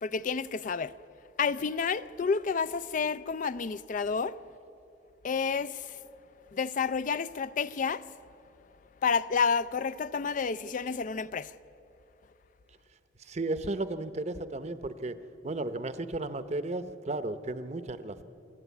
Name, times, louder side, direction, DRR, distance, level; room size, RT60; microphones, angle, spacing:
voice 1, 0.0-0.9 1.4-4.4 5.2-6.0 6.5-8.0 9.0-11.5, left 5 dB, 45° left, 0.4 m, -30 dB
voice 2, 13.2-15.2 15.4-18.2, right 2 dB, 35° right, 0.7 m, -34 dB
28.0 x 12.0 x 8.4 m
head